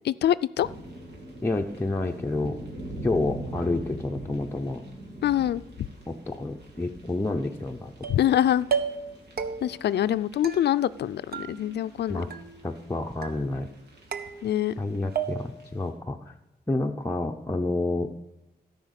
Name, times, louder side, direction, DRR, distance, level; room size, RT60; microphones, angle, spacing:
voice 1, 0.0-0.7 5.2-5.6 8.1-8.7 9.6-12.2 14.4-14.7, left 11 dB, 85° left, 16 dB, 0.4 m, -24 dB
sound 1, 0.6-15.9, right 1 dB, 80° right, 2.5 m, -44 dB
voice 2, 1.4-2.6 3.0-4.8 6.1-7.9 12.1-12.3 12.6-13.7 14.8-16.3 16.7-18.1, left 2 dB, 10° left, 2 dB, 0.6 m, -29 dB
sound 2, 8.0-8.4 8.7-9.1 9.4-9.9 10.4-11.0 11.3-12.0 12.3-12.8 13.2-13.7 14.1-14.8 15.2-15.7, right 6 dB, 65° right, 0.9 m, -33 dB
13.0 x 5.6 x 8.1 m, 1.0 s
wide cardioid pair, 105°, 17 cm